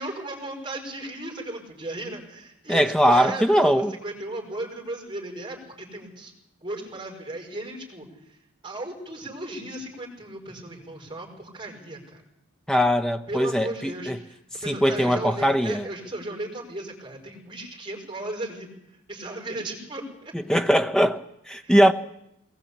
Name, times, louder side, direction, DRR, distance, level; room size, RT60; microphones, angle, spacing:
voice 1, 0.0-6.3 6.6-8.1 8.6-12.2 13.3-14.3 14.6-18.7 19.1-20.3 21.6-21.7, right 1 dB, 20° right, 5.3 m, -35 dB
voice 2, 2.7-3.9 12.7-14.2 14.7-15.9 20.3-21.9, equal, 5° left, 0.8 m, -21 dB
21.5 x 19.5 x 8.6 m
head